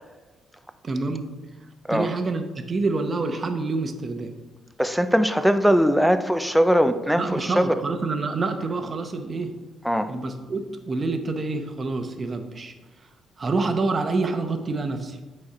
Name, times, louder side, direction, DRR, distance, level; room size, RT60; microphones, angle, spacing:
voice 1, 0.8-1.3 1.9-4.3 7.2-9.5 10.1-12.7 13.4-15.2, right 3 dB, 35° right, 6 dB, 0.9 m, -27 dB
voice 2, 4.8-7.7 9.8-10.1, equal, ahead, 9 dB, 0.5 m, -20 dB
8.8 x 4.3 x 4.2 m, 1.2 s
cardioid pair, 90°, 0 cm